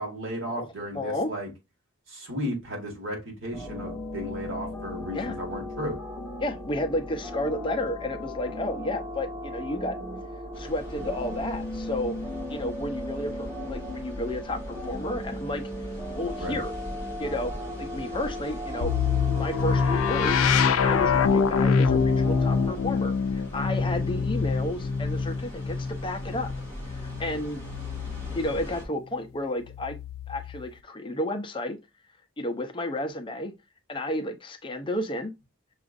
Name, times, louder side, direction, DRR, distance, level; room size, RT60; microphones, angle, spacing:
voice 1, 0.0-1.5 2.1-6.0 16.4-16.6, equal, 65° right, 1.6 m, -34 dB
voice 2, 0.9-1.3 5.1-5.4 6.4-10.0 10.6-12.2 12.5-15.6 16.2-16.7 17.2-17.5 17.8-18.9 19.3-20.5 20.8-26.5 26.9-27.6 28.3-30.0 30.3-31.8 32.4-33.5 33.9-35.3, left 1 dB, 25° left, 0.5 m, -32 dB
sound 1, 3.5-22.8, left 1 dB, ahead, 1.1 m, -37 dB
sound 2, 10.5-28.9, equal, 30° right, 1.9 m, -42 dB
sound 3, 18.8-28.6 29.6-30.7, left 5 dB, 85° left, 0.4 m, -25 dB
6.0 x 2.4 x 2.4 m
head